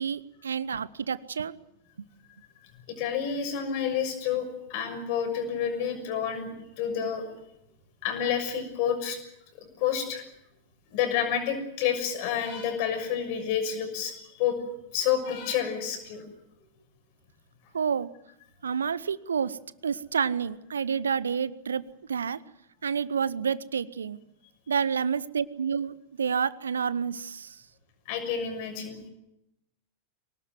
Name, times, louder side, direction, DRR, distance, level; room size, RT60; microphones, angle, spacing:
voice 1, 0.0-1.5 17.7-18.1 18.6-19.6 19.8-21.8 22.1-22.4 22.8-24.2 24.7-27.6, right 6 dB, 70° right, 19 dB, 0.8 m, -29 dB
voice 2, 2.9-6.5 6.8-7.3 8.0-9.2 9.5-10.2 10.9-14.6 14.9-16.2 28.1-29.0, left 8 dB, 45° left, 7 dB, 6.4 m, -29 dB
24.5 x 18.5 x 9.2 m, 0.82 s
figure-of-eight pair, 90°, 0 cm